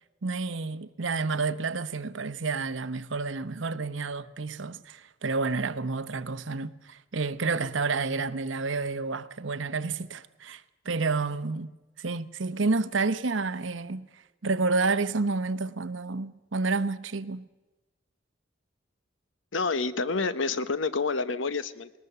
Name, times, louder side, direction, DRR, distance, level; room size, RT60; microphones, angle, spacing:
voice 1, 0.2-11.7 12.0-14.1 14.4-17.5, right 3 dB, 80° right, 0.9 m, -30 dB
voice 2, 19.5-22.0, left 4 dB, 90° left, 1.0 m, -28 dB
20.0 x 19.5 x 6.8 m
head